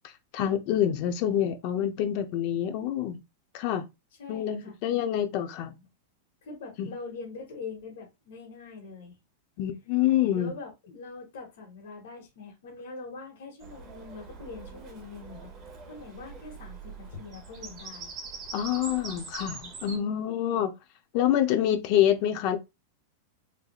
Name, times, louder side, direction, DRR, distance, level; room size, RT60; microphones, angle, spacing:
voice 1, 0.3-3.2 3.5-3.8 4.3-5.7 6.8-6.9 9.6-10.5 18.5-20.7 21.1-22.6, left 11 dB, 45° left, 0.7 m, -26 dB
voice 2, 4.2-4.8 6.4-9.2 10.3-15.5 15.9-18.1 19.9-20.4, left 4 dB, 75° left, 1.7 m, -43 dB
Bird vocalization bird call bird song, 13.6-20.0, right 4 dB, 30° right, 0.8 m, -43 dB
3.6 x 3.3 x 2.3 m
supercardioid pair, 155°, 0 cm